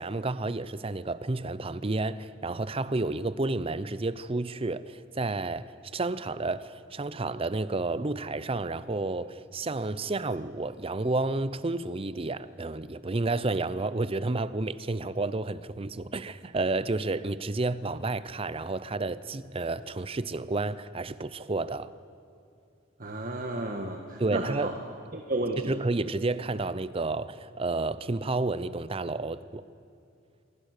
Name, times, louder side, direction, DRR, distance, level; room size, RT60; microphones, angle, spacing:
voice 1, 0.0-21.9 24.2-24.7 25.7-29.6, right 2 dB, 30° right, 0.6 m, -31 dB
voice 2, 23.0-24.7 25.1-25.7, right 2 dB, 45° right, 1.6 m, -32 dB
26.5 x 23.5 x 6.7 m
head